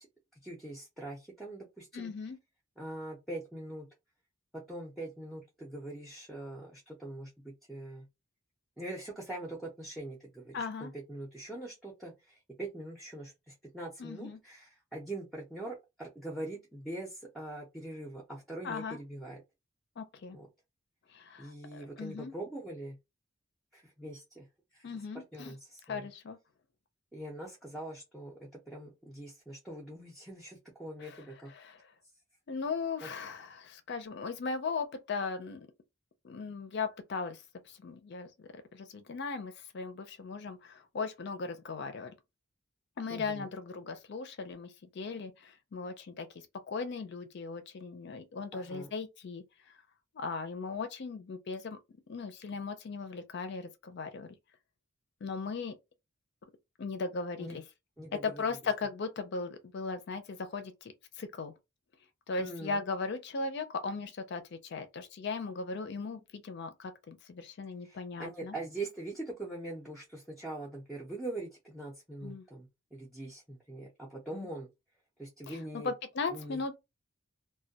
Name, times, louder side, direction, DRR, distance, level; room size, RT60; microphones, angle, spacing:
voice 1, 0.4-2.1 2.8-3.9 4.5-8.1 8.8-19.4 20.3-20.5 21.4-23.0 23.7-24.5 24.7-26.1 27.1-31.5 33.0-33.1 43.1-43.5 48.5-48.9 57.4-57.6 58.0-58.6 62.4-62.8 67.8-74.7 75.2-75.9 76.3-76.6, right 1 dB, ahead, 0.5 m, -43 dB
voice 2, 1.9-2.4 10.5-10.9 14.0-14.4 18.6-19.0 20.0-20.4 21.1-22.3 24.8-25.5 25.9-26.4 31.0-31.2 31.5-31.8 32.5-35.7 36.2-37.4 37.7-38.3 38.7-42.1 43.0-46.3 46.7-49.4 50.1-51.8 52.1-54.3 55.2-55.7 56.8-57.6 58.1-61.5 62.3-68.6 72.2-72.4 74.3-74.5 75.5-75.6 75.8-76.8, left 4 dB, 55° left, 0.4 m, -38 dB
2.2 x 2.1 x 2.7 m
head